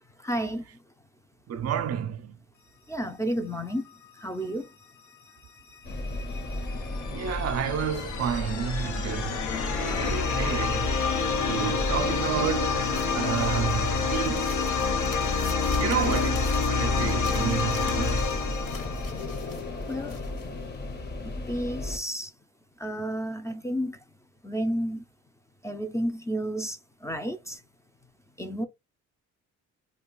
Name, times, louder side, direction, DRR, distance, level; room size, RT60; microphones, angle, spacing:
voice 1, 0.2-0.6 2.9-3.8 4.2-4.7 15.8-16.1 19.9-20.2 21.2-22.3 22.8-24.0 24.4-25.0 25.6-27.6 28.4-28.7, equal, 10° left, 0.4 m, -31 dB
voice 2, 1.5-2.4 7.1-14.5 15.8-18.3, right 8 dB, 55° right, 0.5 m, -31 dB
sound 1, 5.7-19.6, left 5 dB, 75° left, 0.9 m, -28 dB
sound 2, 5.8-22.0, left 2 dB, 35° left, 0.8 m, -34 dB
sound 3, 12.8-21.0, left 4 dB, 50° left, 1.1 m, -45 dB
2.3 x 2.3 x 3.7 m
cardioid pair, 90°, 30 cm